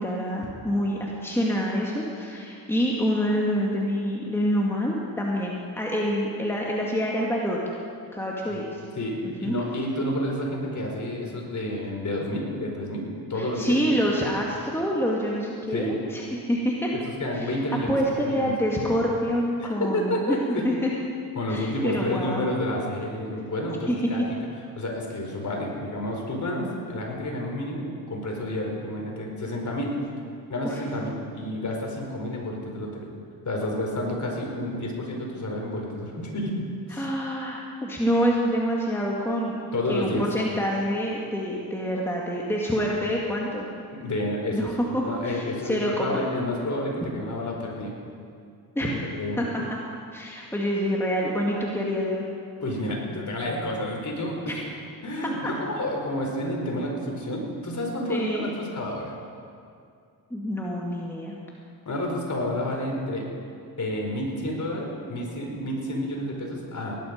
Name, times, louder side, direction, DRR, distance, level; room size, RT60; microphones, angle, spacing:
voice 1, 0.0-7.6 8.1-8.8 9.2-9.5 13.3-16.9 17.3-20.4 20.6-20.9 21.5-22.4 23.9-24.3 30.6-30.8 36.9-39.6 39.9-43.7 44.5-46.2 48.8-49.0 49.4-49.6 50.1-52.2 54.5-54.6 55.4-55.5 58.1-58.5 60.3-61.4, equal, 5° left, -3 dB, 2.3 m, -27 dB
voice 2, 9.0-13.8 15.7-16.0 17.0-18.6 19.6-20.7 21.3-24.5 24.8-29.9 30.5-33.1 33.4-36.5 36.9-37.1 39.7-40.3 43.9-44.7 45.0-47.9 49.2-49.4 52.6-54.6 55.0-59.1 61.8-63.3 63.8-67.0, left 1 dB, 40° left, 0 dB, 4.6 m, -30 dB
18.0 x 11.5 x 5.3 m, 2.4 s
supercardioid pair, 60°, 46 cm